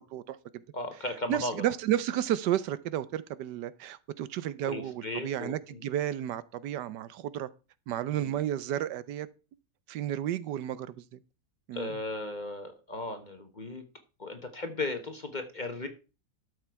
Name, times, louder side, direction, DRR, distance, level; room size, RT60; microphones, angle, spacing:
voice 1, 0.1-0.6 1.3-7.5 7.9-9.3 9.9-11.2 11.7-11.9, right 11 dB, 85° right, 1.3 m, -32 dB
voice 2, 0.7-1.7 4.7-5.8 8.1-8.3 11.7-13.8 14.2-15.9, left 2 dB, 30° left, 1.1 m, -36 dB
12.5 x 6.6 x 4.6 m
omnidirectional pair, 1.8 m